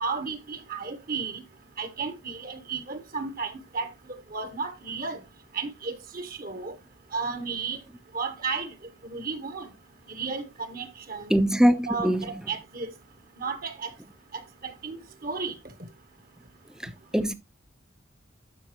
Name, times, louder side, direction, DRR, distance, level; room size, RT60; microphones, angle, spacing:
voice 1, 0.0-1.4 1.8-3.9 4.3-5.2 5.5-6.7 7.1-7.8 8.1-8.7 9.1-9.7 10.1-11.3 11.9-12.9 13.4-13.9 14.6-15.5, right 4 dB, 45° right, 1.2 m, -33 dB
voice 2, 11.3-12.2 17.1-17.3, equal, 5° right, 0.6 m, -21 dB
12.0 x 5.3 x 3.0 m
head